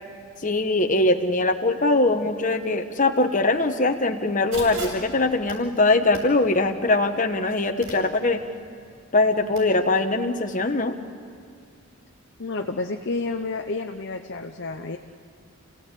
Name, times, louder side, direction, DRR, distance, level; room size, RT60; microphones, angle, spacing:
voice 1, 0.4-8.4 9.1-11.0, left 2 dB, 35° left, 6 dB, 1.3 m, -22 dB
sound 1, 4.5-9.6, right 1 dB, 70° right, 6.4 m, -42 dB
voice 2, 12.4-15.0, left 3 dB, 50° left, 3 dB, 0.8 m, -30 dB
28.5 x 17.0 x 8.4 m, 2.3 s
head